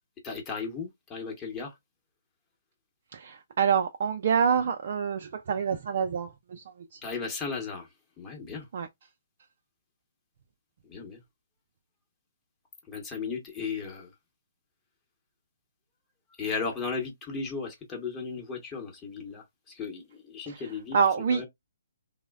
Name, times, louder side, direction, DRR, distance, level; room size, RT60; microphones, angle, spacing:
voice 1, 0.2-1.7 7.0-7.9 8.2-8.7 10.9-11.2 12.9-14.1 16.4-21.0 21.3-21.5, left 5 dB, 20° left, 0.9 m, -35 dB
voice 2, 3.1-6.6 6.9-7.0 8.7-8.9 20.5-20.6 20.9-21.5, right 6 dB, 55° right, 0.4 m, -26 dB
3.1 x 2.1 x 2.2 m
hypercardioid pair, 145°, 0 cm